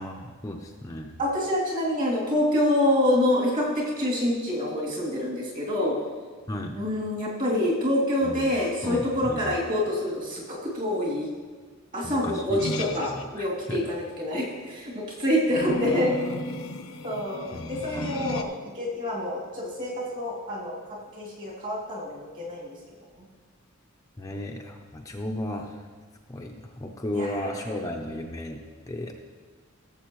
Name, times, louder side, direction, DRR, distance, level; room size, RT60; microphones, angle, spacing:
voice 1, 0.0-1.1 6.5-6.8 8.2-8.5 8.8-9.5 12.0-13.8 17.5-18.3 24.2-25.8 26.3-29.1, left 1 dB, 15° left, 1 dB, 0.6 m, -35 dB
voice 2, 1.2-6.0 6.7-11.3 11.9-16.2 17.0-18.5 18.7-20.8 21.2-22.8 23.2-23.3 24.2-24.3 27.1-27.3, left 1 dB, 40° right, -4 dB, 2.9 m, -26 dB
sound 1, 12.6-13.2 15.5-18.4, left 2 dB, 85° left, 0.8 m, -33 dB
16.5 x 7.5 x 3.1 m, 1.5 s
head